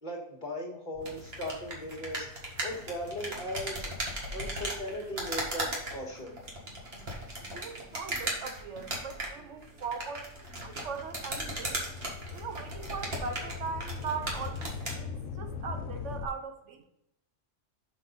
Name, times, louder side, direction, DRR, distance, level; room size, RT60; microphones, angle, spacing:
voice 1, 0.0-2.3 2.6-3.9 4.3-6.4, left 1 dB, 40° left, -1 dB, 1.8 m, -38 dB
sound 1, 1.0-7.7 8.3-16.3, left 5 dB, 90° left, 1.0 m, -44 dB
sound 2, 1.0-15.0, right 1 dB, 55° right, 1.9 m, -37 dB
voice 2, 7.5-10.3 10.6-11.8 12.3-16.8, right 5 dB, 75° right, 6 dB, 1.2 m, -39 dB
6.6 x 6.0 x 3.9 m, 0.81 s
omnidirectional pair, 1.2 m